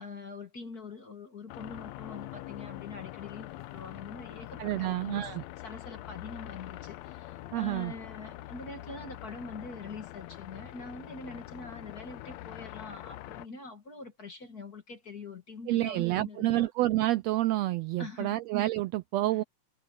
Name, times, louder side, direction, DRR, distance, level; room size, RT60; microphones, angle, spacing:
voice 1, 0.0-5.3 5.6-16.7 18.0-18.4 19.2-19.4, left 4 dB, 35° left, 1.7 m, -44 dB
sound 1, 1.5-13.5, left 15 dB, 75° left, 1.7 m, -44 dB
voice 2, 4.6-5.4 7.5-7.9 15.7-19.4, right 16 dB, 85° right, 1.5 m, -28 dB
omnidirectional pair, 3.5 m